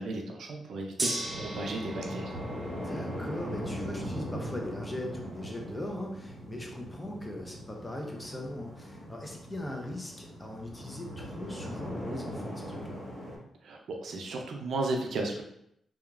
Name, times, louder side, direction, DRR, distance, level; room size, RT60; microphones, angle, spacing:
voice 1, 0.0-2.3 13.6-15.4, right 2 dB, 75° right, 2 dB, 0.4 m, -34 dB
Gong, 1.0-11.2, right 1 dB, 35° right, 0.8 m, -43 dB
sound 1, 1.2-13.4, equal, 10° right, 1.4 m, -40 dB
voice 2, 2.6-13.0, left 1 dB, 20° left, 0 dB, 0.6 m, -40 dB
2.8 x 2.4 x 2.4 m, 0.74 s
cardioid pair, 65°, 0 cm